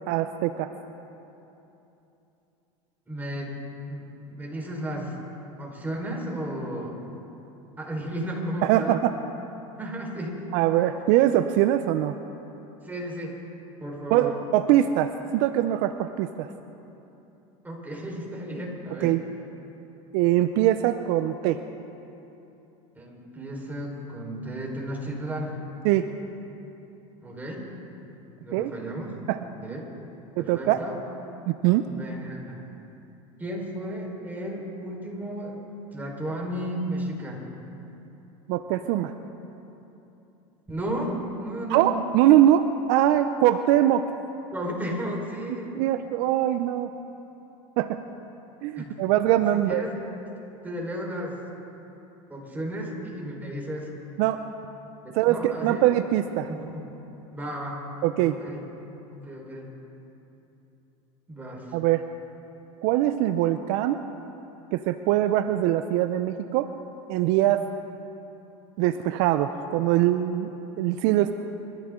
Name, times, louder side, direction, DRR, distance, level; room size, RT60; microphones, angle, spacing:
voice 1, 0.1-0.7 8.6-9.1 10.5-12.1 14.1-16.5 19.0-19.2 20.1-21.6 25.8-26.0 28.5-28.7 29.3-29.4 30.4-30.8 31.5-31.8 38.5-39.1 41.7-44.1 45.7-46.9 47.8-48.0 48.6-49.8 54.2-54.4 55.1-56.5 58.0-58.3 61.7-62.0 62.8-64.0 64.7-66.7 67.1-67.6 68.8-70.5 70.8-71.3, right 13 dB, 65° right, 9 dB, 0.7 m, -22 dB
voice 2, 3.1-3.5 3.9-5.2 5.6-7.0 7.8-9.0 9.8-10.5 12.8-13.4 13.8-14.3 17.6-19.2 22.9-25.6 27.2-27.7 28.0-29.1 29.6-29.9 30.4-31.0 31.8-32.6 33.4-35.6 35.9-37.4 40.7-41.1 41.4-41.9 44.5-45.7 48.8-48.9 49.5-49.9 50.6-51.4 52.3-53.9 55.0-55.8 56.5-56.9 57.3-57.8 58.3-58.6 59.1-59.7 61.3-61.7, right 1 dB, 10° right, -2 dB, 4.5 m, -34 dB
25.0 x 14.0 x 3.8 m, 3.0 s
supercardioid pair, 105°, 17 cm